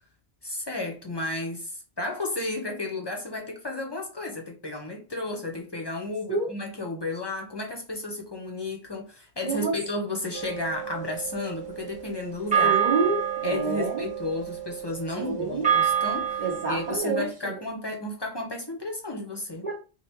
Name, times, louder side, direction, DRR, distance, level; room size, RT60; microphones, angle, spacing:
voice 1, 0.4-12.8 13.4-19.7, left 2 dB, 30° left, 0.6 m, -33 dB
voice 2, 9.4-9.7 12.5-14.0 15.2-15.7 16.4-17.6 19.6-19.7, right 4 dB, 45° right, 0.8 m, -28 dB
sound 1, 10.3-17.0, right 8 dB, 5° right, 1.0 m, -28 dB
3.3 x 2.6 x 2.8 m
omnidirectional pair, 1.1 m